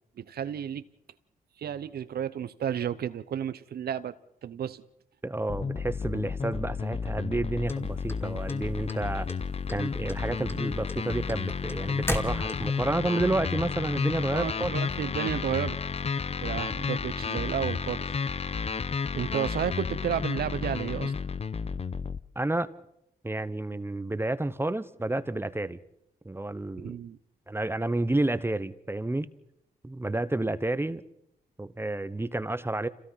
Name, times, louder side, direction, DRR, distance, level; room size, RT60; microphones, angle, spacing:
voice 1, 0.2-0.9 1.6-4.2 4.4-4.8 14.3-15.8 16.4-18.1 19.1-21.1 26.8-27.2, right 9 dB, 70° right, 0.9 m, -32 dB
voice 2, 5.2-9.3 9.7-14.7 22.4-22.7 23.2-25.8 26.2-27.0 27.5-29.3 29.8-31.0 31.6-32.9, right 2 dB, 15° right, 1.0 m, -30 dB
sound 1, 5.5-22.2, left 5 dB, 40° left, 0.8 m, -32 dB
sound 2, 7.7-8.9 9.3-9.8 10.1-12.9, left 1 dB, 15° left, 2.4 m, -34 dB
27.0 x 17.0 x 5.8 m
cardioid pair, 65°, 17 cm